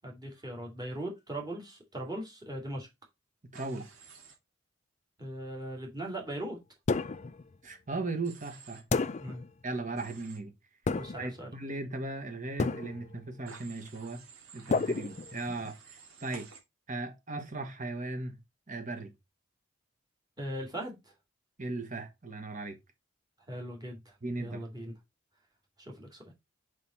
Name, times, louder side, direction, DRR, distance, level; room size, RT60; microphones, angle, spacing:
voice 1, 0.0-2.9 5.2-6.6 9.2-9.4 10.9-11.5 20.4-21.1 23.5-24.9 25.8-26.3, right 1 dB, 20° right, 2.4 m, -39 dB
voice 2, 3.5-3.9 7.6-8.8 9.6-10.5 11.2-14.2 14.5-15.8 16.2-16.5 16.9-18.4 18.7-19.1 21.6-22.8 24.2-24.6, right 2 dB, 40° right, 1.4 m, -37 dB
Human voice / Train, 3.5-4.3 8.2-8.8 10.0-10.4 13.5-16.6, right 5 dB, 80° right, 2.0 m, -52 dB
sound 1, 6.9-7.4 8.9-9.5 10.9-11.4 12.6-13.2 14.7-15.7, left 4 dB, 35° left, 0.4 m, -31 dB
5.4 x 5.0 x 4.2 m
head